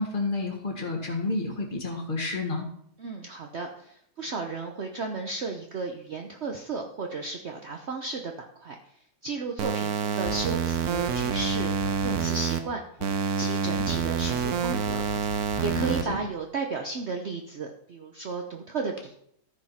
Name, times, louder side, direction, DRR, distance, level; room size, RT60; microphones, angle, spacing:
voice 1, 0.0-2.7 15.7-16.2, left 3 dB, 30° left, 1 dB, 2.3 m, -30 dB
voice 2, 3.0-8.8 9.2-12.8 13.2-19.2, right 3 dB, 50° right, 3 dB, 1.1 m, -34 dB
sound 1, 9.6-12.6 13.0-16.0, right 6 dB, 70° right, 1.4 m, -27 dB
sound 2, 10.2-12.5 13.8-16.4, left 7 dB, 60° left, 1.4 m, -41 dB
14.0 x 5.2 x 5.8 m, 0.70 s
omnidirectional pair, 1.7 m